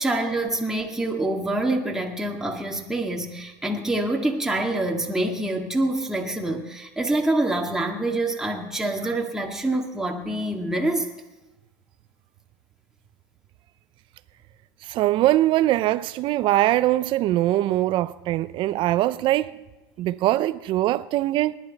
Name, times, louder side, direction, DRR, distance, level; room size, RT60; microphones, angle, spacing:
voice 1, 0.0-11.1, right 2 dB, 5° right, 1.9 m, -26 dB
voice 2, 14.9-19.5 20.0-21.6, right 15 dB, 55° right, 0.6 m, -22 dB
19.5 x 11.0 x 4.1 m
supercardioid pair, 100°, 10 cm